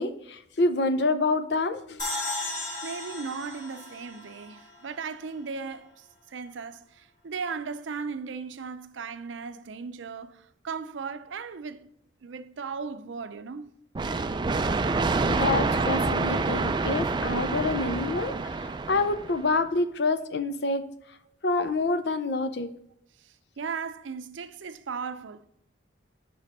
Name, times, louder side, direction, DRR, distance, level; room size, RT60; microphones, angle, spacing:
voice 1, 0.0-2.0 15.3-20.8 21.4-22.7, left 3 dB, 60° left, 0.6 m, -27 dB
sound 1, 2.0-5.3, left 2 dB, 40° left, 2.6 m, -36 dB
voice 2, 2.8-11.9 12.2-13.7 17.6-17.9 23.2-25.4, right 5 dB, 90° right, 0.5 m, -37 dB
sound 2, 13.9-19.5, right 3 dB, 25° right, 0.3 m, -27 dB
5.8 x 5.2 x 4.2 m
head